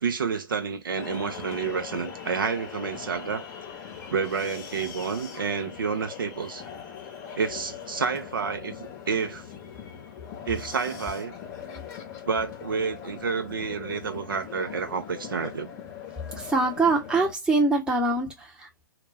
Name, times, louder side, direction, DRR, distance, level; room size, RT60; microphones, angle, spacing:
voice 1, 0.0-3.5 4.1-6.6 7.3-9.4 10.5-11.3 12.3-15.7, right 5 dB, 75° right, 0.6 m, -29 dB
sound 1, 1.0-17.3, left 7 dB, 30° left, 0.8 m, -41 dB
voice 2, 16.4-18.7, right 3 dB, 5° right, 0.9 m, -24 dB
2.3 x 2.1 x 3.2 m
hypercardioid pair, 125°, 11 cm